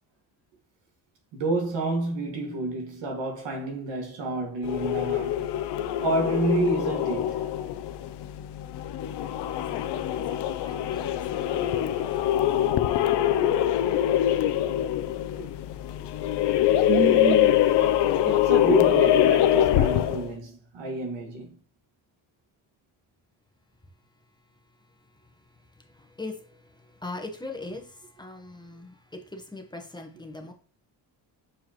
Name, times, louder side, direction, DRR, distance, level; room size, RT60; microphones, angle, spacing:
voice 1, 1.3-5.5 6.0-7.5 15.4-15.5 16.8-17.9 18.2-21.6, right 3 dB, 85° right, 1.9 m, -29 dB
sound 1, 4.6-20.3, left 11 dB, 70° left, 0.6 m, -24 dB
voice 2, 9.5-12.8 23.8-30.5, left 2 dB, 10° left, 1.0 m, -43 dB
7.2 x 4.6 x 3.0 m
cardioid pair, 125°, 42 cm